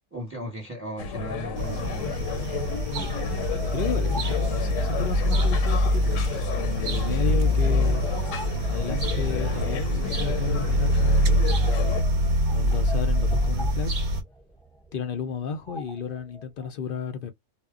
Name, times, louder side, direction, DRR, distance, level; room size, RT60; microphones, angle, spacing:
voice 1, 0.1-2.3, equal, 10° right, 0.9 m, -36 dB
sound 1, 1.0-12.0, left 5 dB, 85° left, 1.0 m, -33 dB
sound 2, 1.5-14.2, equal, 45° right, 0.7 m, -24 dB
sound 3, 2.3-16.7, right 1 dB, 5° left, 0.3 m, -45 dB
voice 2, 3.7-6.2 6.6-8.1 8.6-11.4 12.4-14.1 14.9-17.3, left 6 dB, 60° left, 0.5 m, -33 dB
2.1 x 2.1 x 3.5 m
omnidirectional pair, 1.3 m